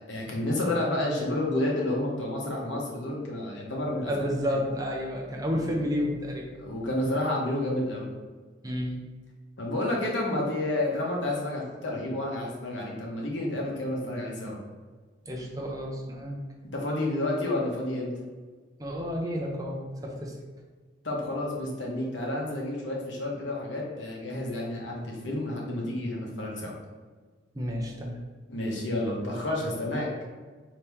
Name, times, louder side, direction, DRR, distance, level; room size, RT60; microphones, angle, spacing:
voice 1, 0.1-4.4 6.6-8.1 9.6-14.6 16.7-18.1 21.0-26.7 28.5-30.1, left 1 dB, 70° left, -2 dB, 1.0 m, -30 dB
voice 2, 4.1-6.5 8.6-9.0 15.3-16.4 18.8-20.3 27.5-28.2, equal, 20° right, -1 dB, 0.5 m, -31 dB
4.2 x 2.9 x 3.5 m, 1.4 s
head